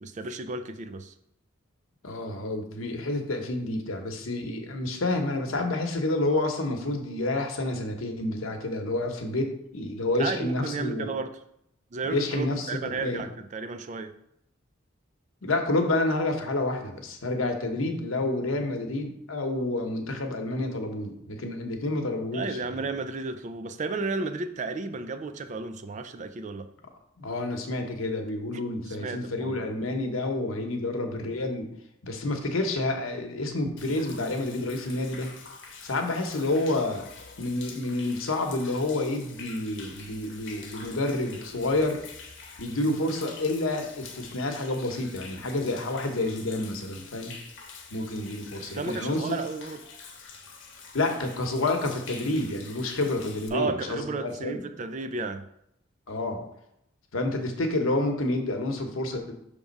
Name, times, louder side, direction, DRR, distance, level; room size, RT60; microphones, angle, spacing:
voice 1, 0.0-1.1 10.2-11.3 11.9-14.1 22.3-26.7 28.9-29.6 48.6-49.8 53.5-55.5, right 3 dB, 35° right, 9 dB, 0.4 m, -33 dB
voice 2, 2.0-11.1 12.1-13.2 15.4-22.6 27.2-31.7 32.0-35.3 35.8-37.1 37.4-42.0 42.6-47.4 47.9-49.4 50.9-54.6 56.1-56.4 57.1-59.3, left 2 dB, 85° left, 4 dB, 1.0 m, -29 dB
Human voice / Rain / Stream, 33.8-53.5, left 5 dB, 65° left, 0.9 m, -46 dB
6.0 x 3.5 x 5.2 m, 0.78 s
head